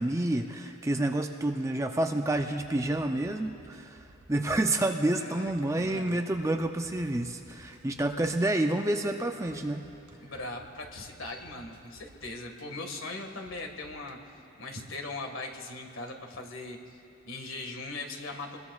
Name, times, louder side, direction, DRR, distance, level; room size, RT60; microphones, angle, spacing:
voice 1, 0.0-4.0 4.3-9.9, right 1 dB, 15° right, 5 dB, 0.5 m, -29 dB
sound 1, 3.0-14.1, right 1 dB, 85° right, 1.3 m, -56 dB
voice 2, 5.2-6.2 10.2-14.2 14.6-17.0 17.3-18.6, left 2 dB, 70° left, 3 dB, 1.8 m, -40 dB
26.5 x 21.0 x 2.4 m, 2.8 s
head